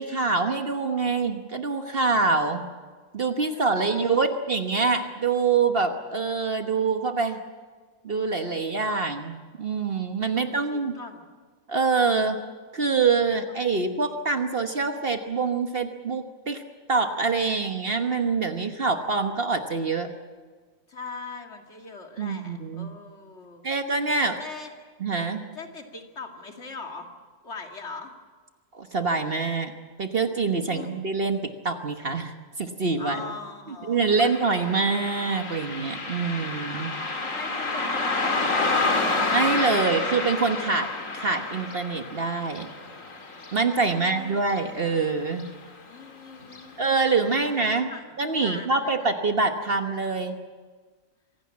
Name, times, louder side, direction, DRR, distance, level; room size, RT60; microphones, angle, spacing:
voice 1, 0.0-2.7 3.1-7.4 8.0-10.9 11.7-12.4 12.7-16.6 16.9-20.1 22.2-22.9 23.6-24.4 25.0-25.5 28.7-32.3 32.6-33.3 33.9-36.9 39.3-42.7 43.5-45.5 46.8-47.9 48.2-50.4, right 4 dB, 45° right, 6 dB, 1.4 m, -25 dB
voice 2, 3.5-4.3 10.3-11.2 20.9-23.6 24.2-24.7 25.5-27.1 27.4-28.1 30.7-31.0 33.0-34.3 37.2-39.2 43.7-44.4 45.8-46.8 47.3-49.1, left 4 dB, 55° left, 3 dB, 2.6 m, -41 dB
Car passing by, 34.3-45.1 45.4-45.5 46.4-46.6 47.1-47.2 47.7-47.8, left 3 dB, 70° left, 2.7 m, -29 dB
25.5 x 17.5 x 8.6 m, 1.5 s
omnidirectional pair, 1.4 m